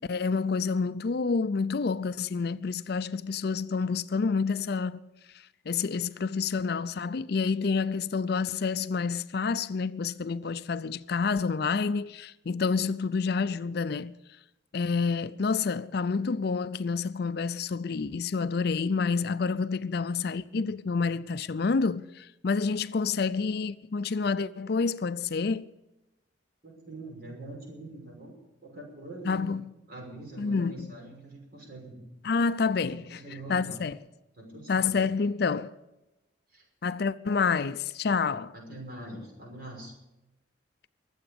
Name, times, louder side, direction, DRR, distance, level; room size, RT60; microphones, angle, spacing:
voice 1, 0.1-5.0 5.7-14.2 14.7-25.7 29.2-29.6 30.4-30.9 32.2-33.2 33.5-34.0 34.7-35.7 36.8-38.5, left 5 dB, 55° left, 0.5 m, -28 dB
voice 2, 26.6-28.3 28.6-29.5 29.9-32.1 32.8-33.8 34.4-34.9 36.5-36.6 38.5-39.9, right 2 dB, 50° right, 6.1 m, -44 dB
23.0 x 8.1 x 6.8 m
head